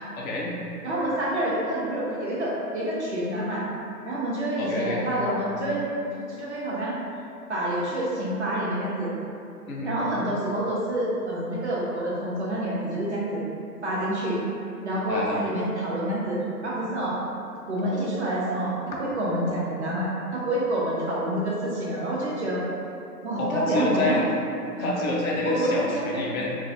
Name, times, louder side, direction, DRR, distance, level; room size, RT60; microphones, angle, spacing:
voice 1, 0.2-0.5 4.6-5.0 9.7-9.9 15.1-15.4 23.4-24.2 24.8-26.5, left 1 dB, 60° left, -3 dB, 0.5 m, -27 dB
voice 2, 0.8-3.6 4.0-5.8 6.3-7.0 7.5-9.1 9.8-13.4 13.8-14.4 14.8-17.2 17.7-18.7 19.0-22.6 23.2-24.2 24.8-24.9 25.4-26.2, right 1 dB, 45° right, -6 dB, 0.6 m, -27 dB
2.3 x 2.0 x 2.6 m, 2.6 s
figure-of-eight pair, 140°, 49 cm